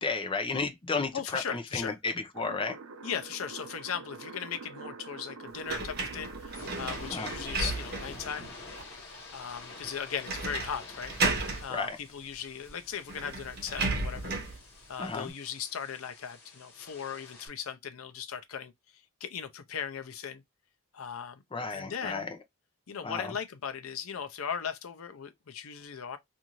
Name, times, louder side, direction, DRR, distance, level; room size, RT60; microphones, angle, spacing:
voice 1, 0.0-2.8 7.1-7.3 11.7-12.0 15.0-15.3 21.5-22.4 23.0-23.3, left 4 dB, 25° left, 0.6 m, -33 dB
voice 2, 1.1-2.0 3.0-8.5 9.3-14.3 14.9-18.7 19.2-20.4 20.9-21.4 21.7-22.3 22.9-26.2, left 7 dB, 80° left, 0.5 m, -38 dB
sound 1, 2.3-7.4, right 4 dB, 80° right, 0.5 m, -45 dB
sound 2, 5.7-8.2 8.8-8.9 10.3-10.7 11.0-11.6 12.7-12.8 13.1-14.6, right 3 dB, 50° right, 0.9 m, -33 dB
sound 3, 6.4-17.5, left 3 dB, 50° left, 1.4 m, -48 dB
2.6 x 2.6 x 2.9 m
head